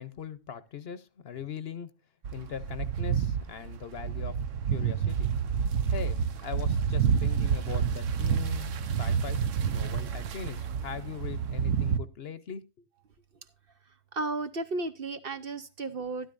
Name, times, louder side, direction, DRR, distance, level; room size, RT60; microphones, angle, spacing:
voice 1, 0.0-1.9 2.3-4.3 4.7-5.3 5.9-9.4 9.7-12.6, left 8 dB, 55° left, 1.0 m, -40 dB
sound 1, 2.2-12.0, right 7 dB, 80° right, 1.2 m, -29 dB
voice 2, 14.1-16.3, right 3 dB, 55° right, 0.8 m, -34 dB
13.0 x 12.0 x 2.5 m
omnidirectional pair, 1.3 m